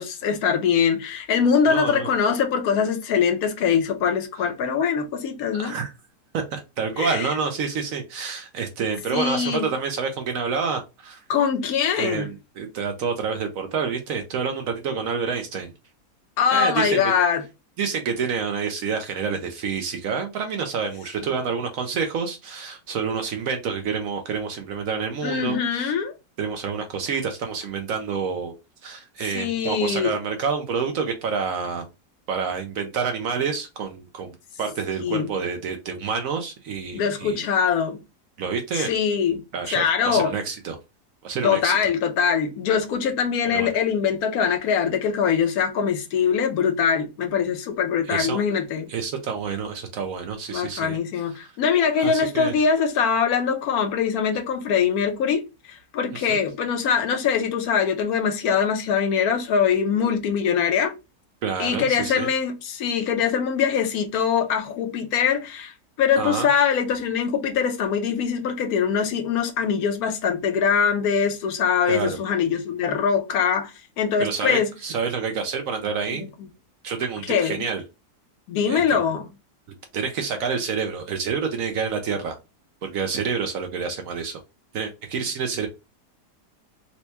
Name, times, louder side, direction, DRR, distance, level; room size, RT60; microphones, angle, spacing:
voice 1, 0.0-5.8 7.0-7.3 9.1-9.7 11.3-12.3 16.4-17.4 21.2-21.3 25.2-26.1 29.3-30.1 35.0-35.3 36.9-38.0 38.7-39.4 39.7-40.3 41.4-48.9 50.5-60.9 61.6-74.7 76.1-76.2 77.3-77.6 78.5-79.2, left 7 dB, 70° left, 1.1 m, -23 dB
voice 2, 1.7-2.1 5.5-5.9 6.3-11.2 12.0-15.7 16.5-17.1 17.8-25.9 26.4-28.5 28.8-31.8 32.3-37.4 38.4-38.9 39.5-40.8 41.2-41.8 43.5-43.7 48.0-48.4 48.9-51.0 52.0-52.5 56.2-56.4 61.4-62.3 66.2-66.5 71.9-72.2 74.2-76.3 76.8-77.8 78.7-79.0 79.9-82.4 82.8-84.4 84.7-85.7, right 5 dB, 65° right, 0.9 m, -28 dB
4.3 x 2.2 x 2.8 m
omnidirectional pair, 1.7 m